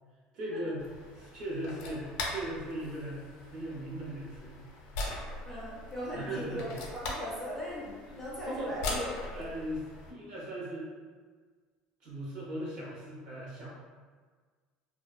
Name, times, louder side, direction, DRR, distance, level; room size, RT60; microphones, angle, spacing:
voice 1, 0.3-0.8 1.1-4.6 6.1-6.7 8.1-8.2 8.5-10.9 12.0-13.7, right 1 dB, 45° right, -5 dB, 0.7 m, -38 dB
sound 1, 0.8-10.1, left 2 dB, 80° left, 0.5 m, -41 dB
voice 2, 5.5-8.8 9.4-9.5, equal, 5° left, -7 dB, 0.4 m, -39 dB
2.5 x 2.1 x 2.3 m, 1.5 s
cardioid pair, 175°, 2 cm